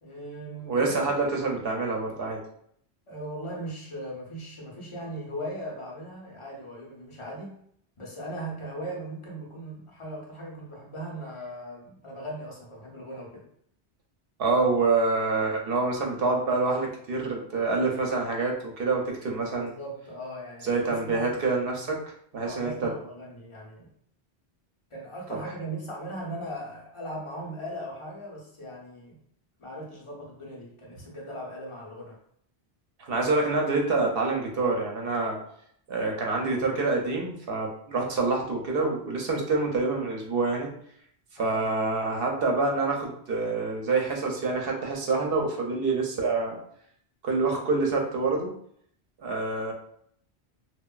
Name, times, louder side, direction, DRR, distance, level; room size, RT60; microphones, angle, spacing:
voice 1, 0.0-1.1 3.1-7.6 8.0-13.5 19.5-21.3 22.4-23.9 24.9-29.2 29.6-32.2 41.4-41.7, right 1 dB, 40° left, -2 dB, 0.5 m, -39 dB
voice 2, 0.7-2.4 14.4-19.7 20.6-22.0 22.3-22.9 33.0-35.4 35.9-40.7 41.4-46.6 47.2-48.5 49.2-49.7, right 3 dB, 65° right, 0 dB, 0.7 m, -26 dB
2.8 x 2.1 x 2.3 m, 0.67 s
omnidirectional pair, 1.1 m